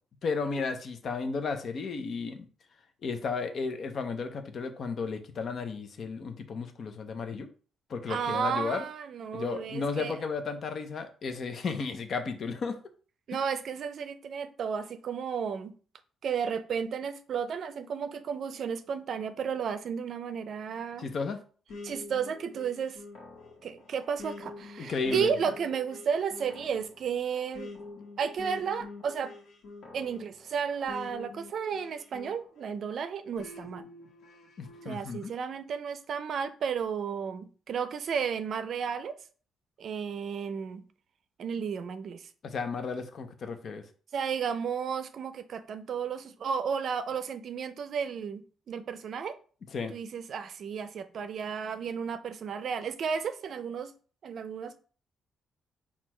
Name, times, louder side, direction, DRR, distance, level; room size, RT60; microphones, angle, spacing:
voice 1, 0.2-2.5 3.0-7.5 7.9-8.8 9.3-12.8 21.0-21.4 24.8-25.3 34.6-35.3 42.4-43.8 49.7-49.9, left 4 dB, 55° left, 0.7 m, -33 dB
voice 2, 8.1-10.2 13.3-15.7 16.2-21.1 21.8-23.0 23.6-27.7 28.2-29.3 29.9-33.8 34.8-39.2 39.8-40.8 41.4-42.3 44.1-48.4 48.7-49.4 49.9-53.9 54.2-54.8, right 6 dB, 60° right, 0.5 m, -33 dB
sound 1, 21.7-32.7 33.4-34.9, left 3 dB, 80° left, 1.1 m, -46 dB
4.4 x 2.4 x 4.3 m
cardioid pair, 90°, 0 cm